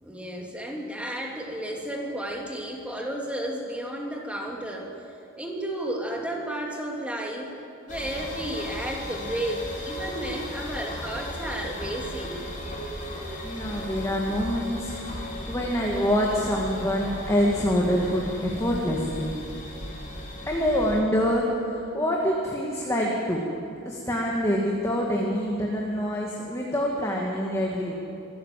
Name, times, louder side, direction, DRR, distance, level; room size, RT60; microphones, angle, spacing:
voice 1, 0.0-5.0 5.4-12.5, right 1 dB, 5° right, -1 dB, 2.8 m, -32 dB
sound 1, 7.9-21.0, left 1 dB, 40° left, 5.5 m, -36 dB
voice 2, 13.4-19.3 20.5-23.4 23.9-27.9, equal, 15° left, -2 dB, 2.1 m, -26 dB
25.5 x 14.0 x 7.6 m, 2.6 s
head